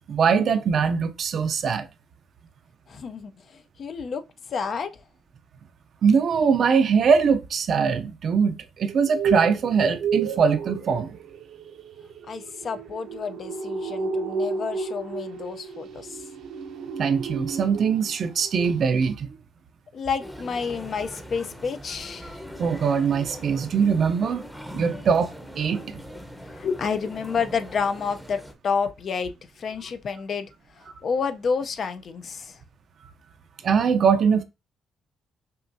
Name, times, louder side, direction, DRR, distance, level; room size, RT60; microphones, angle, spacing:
voice 1, 0.1-1.9 6.0-11.2 17.0-19.3 22.6-24.4 24.7-26.0 33.6-34.4, right 6 dB, 55° right, 0.6 m, -22 dB
voice 2, 2.9-4.9 12.3-16.2 19.9-22.4 26.5-30.5 30.8-32.6, left 5 dB, 50° left, 0.5 m, -30 dB
sound 1, 8.9-18.1 18.4-18.8 19.0-19.1, right 5 dB, 80° right, 0.9 m, -32 dB
sound 2, 20.2-28.5, equal, 5° left, 0.8 m, -41 dB
5.5 x 2.5 x 2.6 m
cardioid pair, 110°, 0 cm